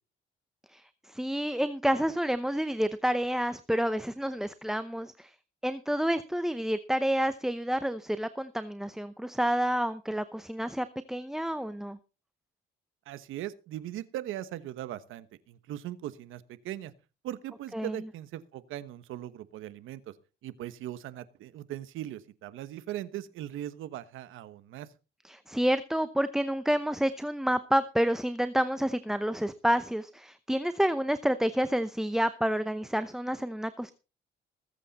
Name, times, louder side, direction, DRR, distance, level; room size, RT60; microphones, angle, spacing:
voice 1, 0.7-5.3 5.6-12.0 17.7-18.0 25.2-33.9, equal, ahead, 12 dB, 0.7 m, -29 dB
voice 2, 13.1-16.9 17.2-20.1 20.4-24.9, right 13 dB, 85° right, 14 dB, 1.2 m, -39 dB
20.0 x 8.4 x 4.2 m, 0.33 s
cardioid pair, 90°, 20 cm